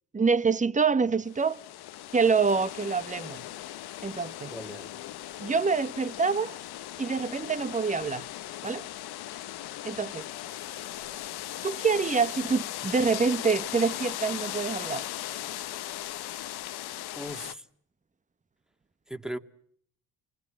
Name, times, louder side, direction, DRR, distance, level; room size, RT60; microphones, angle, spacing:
voice 1, 0.1-1.6 2.1-3.4 4.0-4.5 5.4-6.6 7.0-8.3 8.6-8.9 9.8-10.3 11.6-15.1, right 5 dB, 20° right, 1.0 m, -26 dB
sound 1, 1.3-17.5, left 14 dB, 70° left, 1.1 m, -38 dB
voice 2, 4.5-4.9 17.1-17.7 19.1-19.4, equal, ahead, 2.1 m, -38 dB
27.5 x 21.5 x 7.6 m
supercardioid pair, 60°, 40 cm